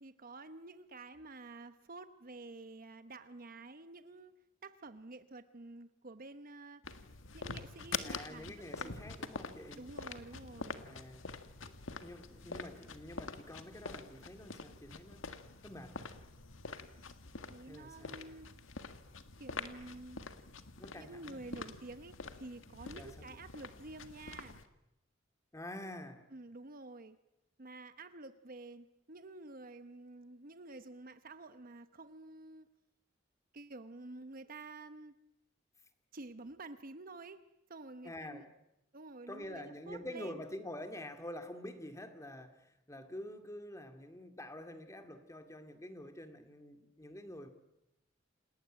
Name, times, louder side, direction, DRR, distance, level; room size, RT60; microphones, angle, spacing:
voice 1, 0.0-4.3 4.6-6.9 7.3-9.1 9.8-10.8 17.5-18.5 19.4-20.2 20.9-24.6 26.3-27.2 27.6-32.7 33.5-35.2 36.1-38.5 38.9-40.4, right 2 dB, 45° right, 1.0 m, -50 dB
sound 1, 6.8-24.7, left 4 dB, 80° left, 1.8 m, -46 dB
voice 2, 8.0-9.9 10.8-11.3 11.7-11.8 12.0-15.4 15.6-16.1 17.7-18.2 20.8-21.4 22.9-23.4 25.5-26.3 38.0-38.5 39.3-47.5, left 1 dB, 15° left, 2.3 m, -47 dB
29.0 x 19.5 x 8.9 m
head